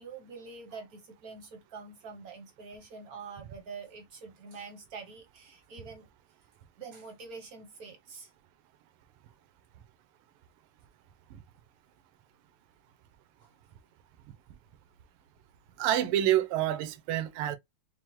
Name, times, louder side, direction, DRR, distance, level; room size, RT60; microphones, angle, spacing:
voice 1, 0.0-6.1 6.8-8.3 13.4-13.5, right 4 dB, 60° right, 0.9 m, -46 dB
voice 2, 15.8-17.6, right 12 dB, 85° right, 1.5 m, -27 dB
5.9 x 2.0 x 3.0 m
omnidirectional pair, 2.4 m